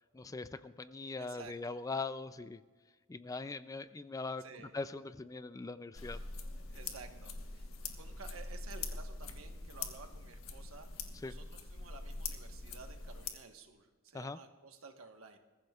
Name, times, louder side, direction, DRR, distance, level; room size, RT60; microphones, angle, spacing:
voice 1, 0.1-2.6 3.1-4.4 4.7-6.2 11.2-11.3 14.1-14.4, left 3 dB, 15° left, 14 dB, 0.3 m, -41 dB
voice 2, 1.2-1.8 4.4-4.7 6.7-15.4, right 4 dB, 85° right, 5 dB, 1.3 m, -53 dB
sound 1, 6.0-13.3, left 4 dB, 80° left, 1.3 m, -44 dB
21.5 x 14.5 x 2.4 m, 1.4 s
head